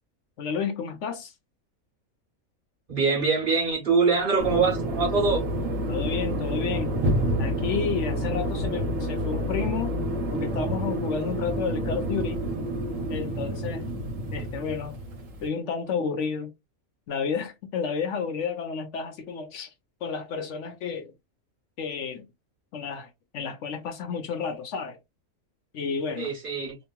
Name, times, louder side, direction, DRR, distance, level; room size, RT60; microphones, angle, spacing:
voice 1, 0.4-1.3 5.9-6.9 7.4-10.0 10.3-12.4 13.1-13.9 14.3-15.0 15.4-16.5 17.1-19.7 20.0-21.1 21.8-22.3 22.7-25.0 25.7-26.3, left 6 dB, 65° left, 0.8 m, -31 dB
voice 2, 2.9-5.4 26.2-26.8, right 4 dB, 40° right, 1.2 m, -23 dB
sound 1, 4.4-15.5, equal, 65° right, 1.2 m, -29 dB
2.9 x 2.5 x 2.2 m
omnidirectional pair, 1.5 m